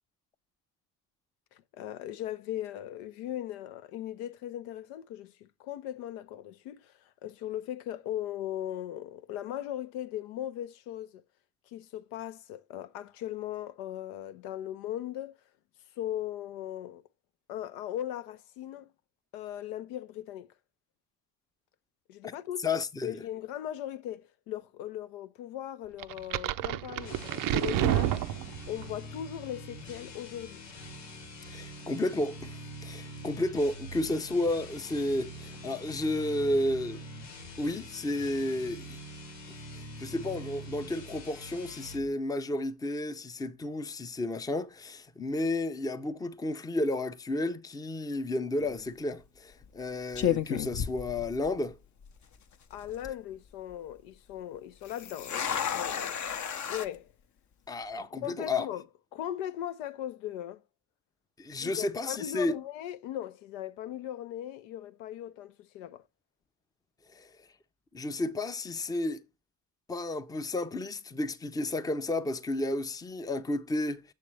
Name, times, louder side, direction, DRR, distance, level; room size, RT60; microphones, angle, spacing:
voice 1, 1.5-6.9 7.2-11.2 11.7-15.4 16.0-17.0 17.5-18.9 19.3-20.5 22.1-22.7 23.0-28.3 28.7-30.6 52.7-56.2 56.7-57.1 58.0-58.8 59.1-60.6 61.6-66.1, left 11 dB, 70° left, 0.7 m, -38 dB
voice 2, 22.2-23.2 31.5-37.0 37.6-39.0 39.7-51.8 57.7-58.7 61.4-62.6 67.1-67.3 67.9-69.2 69.9-74.1, left 2 dB, 10° left, 0.6 m, -32 dB
sound 1, 26.0-28.9, right 13 dB, 45° right, 0.5 m, -29 dB
sound 2, 27.0-42.1, equal, 90° left, 1.3 m, -45 dB
sound 3, 48.6-48.9 49.6-49.8 50.1-51.7 52.0-52.1 52.7-53.1 54.8-56.9, left 9 dB, 35° left, 0.8 m, -32 dB
7.3 x 7.0 x 3.2 m
hypercardioid pair, 65°, 48 cm